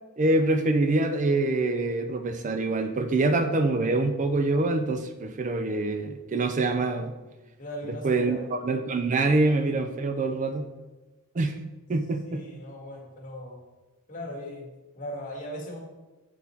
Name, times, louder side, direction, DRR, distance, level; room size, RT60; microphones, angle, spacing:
voice 1, 0.2-7.1 8.0-10.7 11.4-11.6 11.9-12.4, right 2 dB, 35° right, 7 dB, 0.4 m, -25 dB
voice 2, 7.6-8.5 12.2-13.6 14.1-15.8, equal, 35° left, -2 dB, 1.7 m, -38 dB
8.2 x 4.2 x 4.4 m, 1.1 s
head